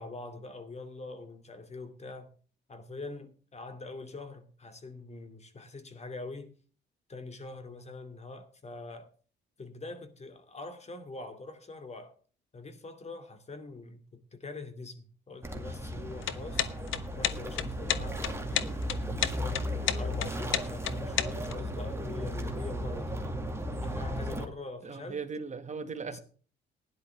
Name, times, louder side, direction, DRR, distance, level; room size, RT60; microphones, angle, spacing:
voice 1, 0.0-2.3 2.7-6.5 7.1-9.1 9.6-12.1 12.5-14.0 14.3-16.7 17.1-18.6 19.1-23.2 23.8-25.2 26.0-26.2, left 3 dB, 35° left, 2.6 m, -44 dB
sound 1, 15.4-24.5, equal, 15° right, 2.1 m, -35 dB
sound 2, 16.1-21.5, left 11 dB, 80° left, 1.0 m, -31 dB
voice 2, 24.8-26.2, right 5 dB, 35° right, 1.9 m, -38 dB
16.5 x 10.5 x 3.5 m
cardioid pair, 90°, 20 cm